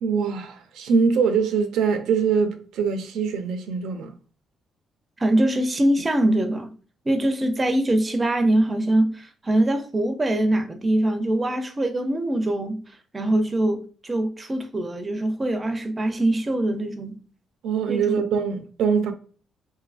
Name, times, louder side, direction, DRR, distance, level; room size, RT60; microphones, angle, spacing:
voice 1, 0.0-4.1 17.6-19.1, right 6 dB, 85° right, 0.4 m, -23 dB
voice 2, 5.2-6.7 7.1-12.8 13.1-17.2 17.9-18.2, right 1 dB, 25° right, 0.4 m, -23 dB
2.6 x 2.4 x 2.3 m
cardioid pair, 90°, 0 cm